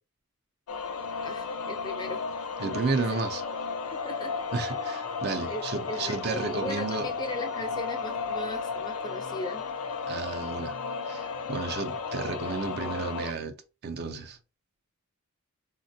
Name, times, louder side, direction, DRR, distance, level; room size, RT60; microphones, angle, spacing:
sound 1, 0.7-13.3, left 5 dB, 80° left, 0.4 m, -34 dB
voice 1, 1.2-2.5 2.9-3.0 3.9-4.3 5.5-9.6, left 1 dB, 20° left, 0.4 m, -38 dB
voice 2, 2.6-3.4 4.5-7.1 10.1-10.7 11.1-13.5 13.8-14.4, right 4 dB, 45° right, 0.4 m, -32 dB
3.5 x 2.1 x 2.6 m
head